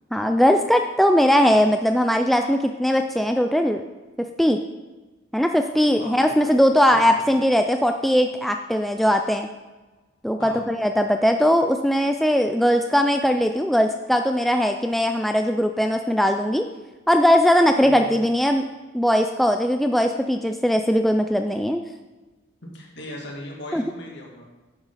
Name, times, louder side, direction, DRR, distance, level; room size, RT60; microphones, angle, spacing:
voice 1, 0.1-3.9 4.2-4.6 5.3-9.5 10.2-16.6 17.1-18.6 18.9-21.8 23.7-23.8, equal, ahead, 5 dB, 0.3 m, -20 dB
voice 2, 6.0-6.6 6.9-7.2 10.4-10.7 17.8-18.2 22.6-24.5, left 1 dB, 55° left, -1 dB, 2.3 m, -38 dB
11.0 x 8.2 x 4.1 m, 1.2 s
head